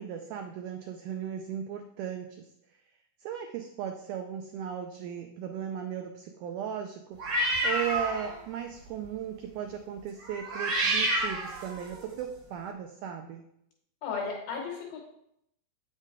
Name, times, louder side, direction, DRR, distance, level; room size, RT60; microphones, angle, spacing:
voice 1, 0.0-2.5 3.2-7.2 7.6-13.4, right 8 dB, 80° right, 4 dB, 1.9 m, -36 dB
sound 1, 7.2-8.4 8.8-9.1 10.2-12.1, right 1 dB, 50° right, 1.6 m, -29 dB
voice 2, 14.0-15.0, left 5 dB, 85° left, 0 dB, 3.2 m, -34 dB
8.7 x 6.5 x 3.7 m, 0.75 s
omnidirectional pair, 4.1 m